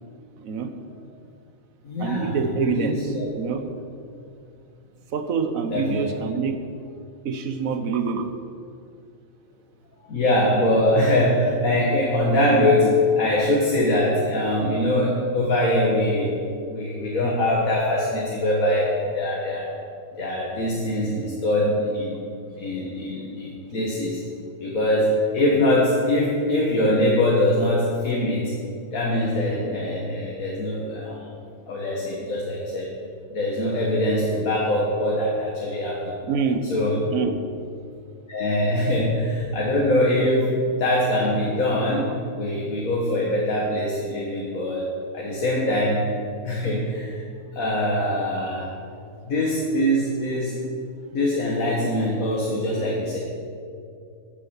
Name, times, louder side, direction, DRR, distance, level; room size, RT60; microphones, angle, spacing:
voice 1, 0.4-0.7 2.0-3.6 5.1-6.6 7.2-8.3 36.3-36.7 37.1-37.4, right 5 dB, 80° right, 7 dB, 1.4 m, -26 dB
voice 2, 1.8-3.3 5.7-6.1 10.1-16.3 16.7-19.8 20.2-22.2 22.6-24.2 24.6-28.5 28.9-31.3 31.7-32.9 33.3-36.1 36.7-37.1 38.3-46.1 46.4-47.2 47.5-48.7 49.3-50.6 51.1-53.2, left 1 dB, 90° left, -3 dB, 2.0 m, -23 dB
10.5 x 8.2 x 7.3 m, 2.4 s
omnidirectional pair, 1.4 m